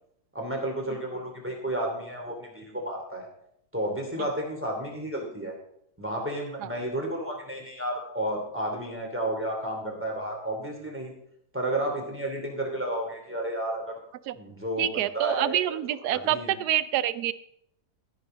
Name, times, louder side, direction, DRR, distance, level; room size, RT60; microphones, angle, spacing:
voice 1, 0.3-3.3 3.7-5.5 6.0-11.1 11.5-13.9 14.3-15.8 16.0-16.6, right 1 dB, 5° right, 0 dB, 3.0 m, -32 dB
voice 2, 14.8-17.3, right 12 dB, 80° right, 16 dB, 1.1 m, -27 dB
13.5 x 10.5 x 3.9 m, 0.71 s
omnidirectional pair, 1.7 m